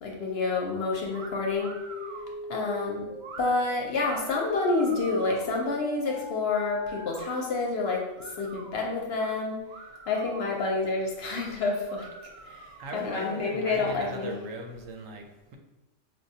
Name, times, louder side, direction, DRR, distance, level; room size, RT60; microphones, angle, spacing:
voice 1, 0.0-1.7 2.5-3.1 3.4-9.6 10.1-12.1 12.4-14.4, left 3 dB, 65° left, 0 dB, 0.7 m, -28 dB
sound 1, 1.1-7.1, left 3 dB, 5° left, 0.6 m, -42 dB
sound 2, 1.1-1.3 1.6-2.3 3.2-3.5 4.0-5.5 6.5-7.3 7.8-8.8 9.2-9.3 9.7-10.7 11.3-11.5 11.9-13.0, right 4 dB, 60° right, 0.5 m, -45 dB
voice 2, 12.8-15.6, right 3 dB, 80° right, 3 dB, 1.0 m, -39 dB
4.6 x 2.2 x 2.7 m, 1.0 s
omnidirectional pair, 1.3 m